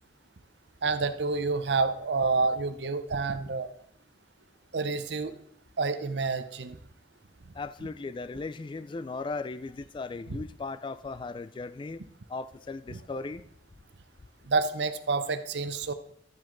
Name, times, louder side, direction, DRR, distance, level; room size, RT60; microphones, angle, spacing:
voice 1, 0.8-3.7 4.7-5.4 5.8-6.8 14.5-15.9, right 4 dB, 70° right, 0.7 m, -28 dB
voice 2, 7.5-12.0 12.3-13.5, left 3 dB, 25° left, 0.3 m, -37 dB
12.0 x 7.5 x 3.9 m
head